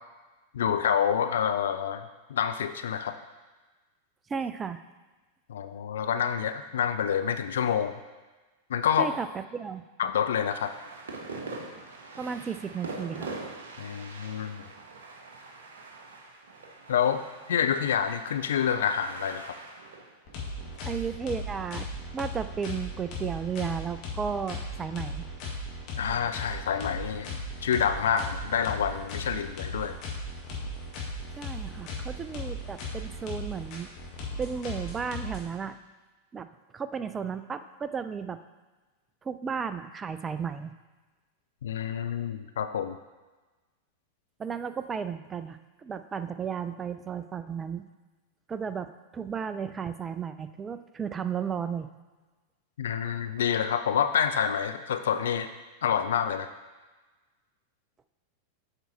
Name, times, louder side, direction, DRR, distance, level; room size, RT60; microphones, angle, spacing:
voice 1, 0.5-3.2 5.5-7.9 8.7-9.1 10.0-10.7 13.8-14.6 16.9-17.2 17.5-19.6 26.0-30.0 41.6-43.0 52.8-55.5 55.8-56.5, left 8 dB, 60° left, 10 dB, 0.3 m, -28 dB
voice 2, 4.3-4.8 9.0-9.8 12.2-13.3 20.8-21.9 22.1-25.3 31.4-33.9 34.4-35.8 36.3-36.5 36.7-38.4 39.2-40.7 44.4-47.9 48.5-51.9, right 6 dB, 20° right, 11 dB, 0.4 m, -34 dB
sound 1, 10.4-21.8, right 3 dB, 65° right, 0.8 m, -43 dB
sound 2, 20.3-35.4, left 1 dB, 40° left, 1.7 m, -37 dB
8.0 x 4.7 x 4.1 m, 1.2 s
figure-of-eight pair, 90°, 0 cm